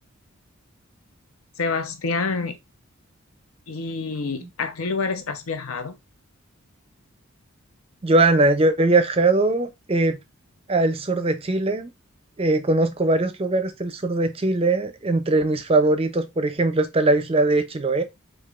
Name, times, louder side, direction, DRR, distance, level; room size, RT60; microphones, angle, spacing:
voice 1, 1.6-2.6 3.7-6.0, left 4 dB, 75° left, 0.7 m, -27 dB
voice 2, 8.0-10.2 10.7-11.9 12.4-18.0, right 2 dB, 25° right, 0.5 m, -21 dB
4.7 x 2.6 x 2.4 m
head